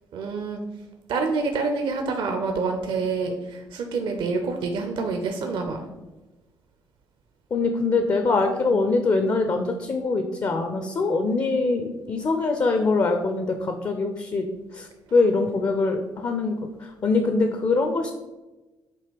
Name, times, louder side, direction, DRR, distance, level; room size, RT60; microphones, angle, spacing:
voice 1, 0.1-0.6 1.1-5.9, right 4 dB, 55° right, 4 dB, 0.7 m, -27 dB
voice 2, 7.5-14.5 14.7-18.1, left 3 dB, 35° left, 5 dB, 0.7 m, -23 dB
7.7 x 2.8 x 5.1 m, 1.1 s
figure-of-eight pair, 45°, 11 cm